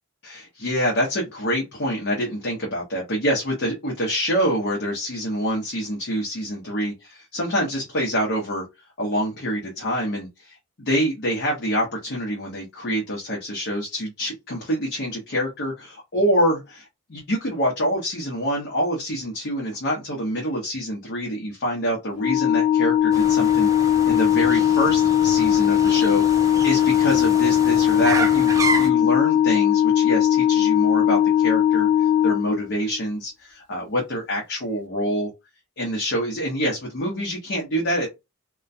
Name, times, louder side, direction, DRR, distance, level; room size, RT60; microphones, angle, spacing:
voice 1, 0.2-8.7 9.0-28.5 28.8-35.3 35.8-38.1, equal, 55° left, 0.8 m, -26 dB
Organ, 22.2-33.0, left 10 dB, 85° left, 0.4 m, -19 dB
sound 1, 23.1-28.9, right 3 dB, 15° right, 0.3 m, -30 dB
2.2 x 2.1 x 2.6 m
head